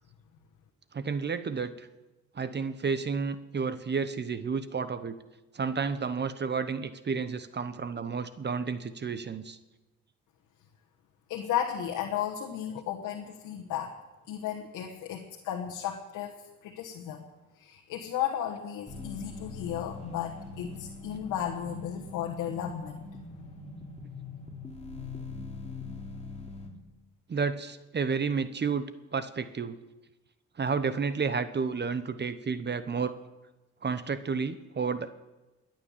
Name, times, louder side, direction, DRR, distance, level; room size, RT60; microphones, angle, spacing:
voice 1, 0.9-1.9 2.3-5.2 5.5-9.6 27.3-28.8 29.1-29.8 30.6-33.1 33.8-35.1, right 5 dB, 35° right, 12 dB, 1.0 m, -31 dB
voice 2, 11.3-13.9 14.3-16.3 16.6-17.2 17.6-23.0, left 10 dB, 90° left, 1 dB, 1.3 m, -34 dB
sound 1, 18.9-26.7, left 3 dB, 20° left, 2.9 m, -42 dB
21.0 x 9.1 x 7.3 m, 1.1 s
cardioid pair, 90°, 30 cm